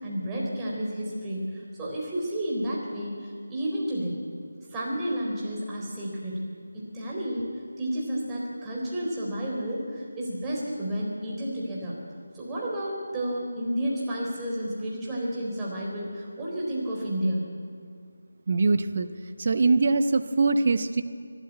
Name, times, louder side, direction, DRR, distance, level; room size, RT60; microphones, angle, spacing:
voice 1, 0.0-4.2 4.7-6.4 6.7-7.5 7.8-12.0 12.3-17.4, equal, 10° right, -4 dB, 4.0 m, -31 dB
voice 2, 18.5-19.1 19.4-21.0, right 3 dB, 40° right, 10 dB, 1.1 m, -22 dB
23.0 x 12.5 x 9.4 m, 2.2 s
figure-of-eight pair, 160°, 0 cm